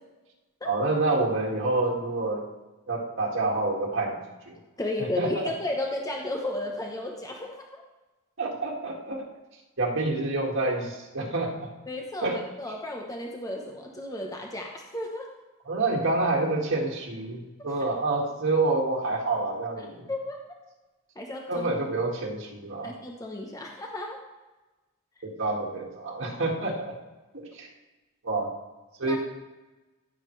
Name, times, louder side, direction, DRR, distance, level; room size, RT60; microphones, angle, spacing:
voice 1, 0.6-2.4 2.9-4.2 4.5-4.6 5.2-5.4 8.4-9.3 9.8-11.7 12.2-12.4 15.7-20.1 21.5-22.9 25.2-27.0 27.3-27.7 28.2-28.5 29.0-29.2, right 2 dB, 65° right, -2 dB, 2.0 m, -27 dB
voice 2, 4.8-7.8 11.9-15.3 20.1-20.4 21.2-21.7 22.8-24.2 29.0-29.2, left 1 dB, 15° left, 1 dB, 0.9 m, -33 dB
15.0 x 7.4 x 3.3 m, 1.1 s
head